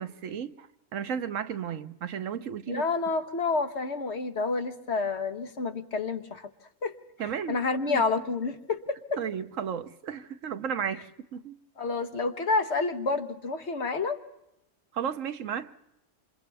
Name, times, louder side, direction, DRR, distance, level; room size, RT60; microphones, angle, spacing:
voice 1, 0.0-2.8 7.2-7.6 7.9-8.0 9.2-11.6 14.9-15.7, right 8 dB, 80° right, 1.3 m, -34 dB
voice 2, 2.7-6.5 6.8-7.0 7.5-9.2 11.8-14.2, left 4 dB, 60° left, 1.5 m, -29 dB
28.0 x 27.0 x 3.4 m
omnidirectional pair, 1.3 m